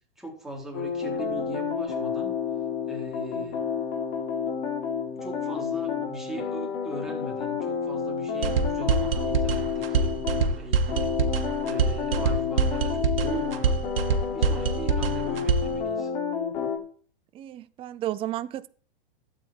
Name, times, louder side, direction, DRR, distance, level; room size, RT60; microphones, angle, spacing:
voice 1, 0.2-2.4 2.9-3.8 5.1-13.8 14.2-16.1, equal, ahead, 3.3 m, -39 dB
sound 1, 0.7-10.5 10.9-16.8, left 6 dB, 55° left, 3.3 m, -30 dB
sound 2, 8.4-15.8, right 5 dB, 75° right, 1.4 m, -25 dB
voice 2, 17.3-18.7, right 13 dB, 20° right, 0.5 m, -33 dB
13.0 x 8.4 x 4.6 m
hypercardioid pair, 120°, 29 cm